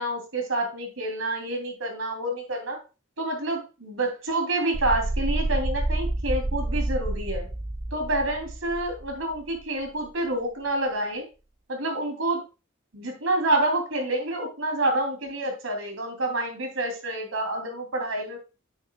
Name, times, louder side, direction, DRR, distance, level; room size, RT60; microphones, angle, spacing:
voice 1, 0.0-2.8 3.2-7.5 7.9-11.2 11.7-12.4 12.9-18.4, right 1 dB, 80° right, 3 dB, 2.8 m, -28 dB
sound 1, 4.7-9.4, right 2 dB, 15° right, 0.5 m, -28 dB
8.8 x 7.9 x 2.2 m, 0.30 s
head